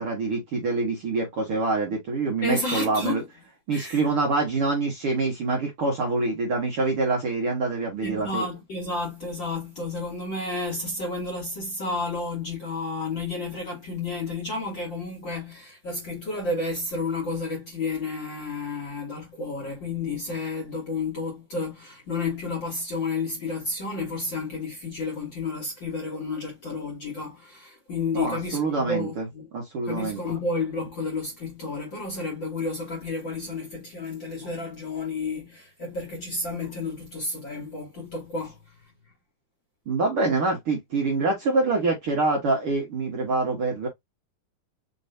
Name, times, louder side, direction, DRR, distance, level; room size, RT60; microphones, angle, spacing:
voice 1, 0.0-3.2 3.7-8.4 28.1-29.3 29.5-30.2 39.9-43.9, right 3 dB, 55° right, 1.7 m, -25 dB
voice 2, 2.4-3.2 3.7-4.1 8.0-29.5 29.9-38.6, left 3 dB, 45° left, 1.8 m, -31 dB
5.5 x 3.0 x 2.7 m
omnidirectional pair, 4.1 m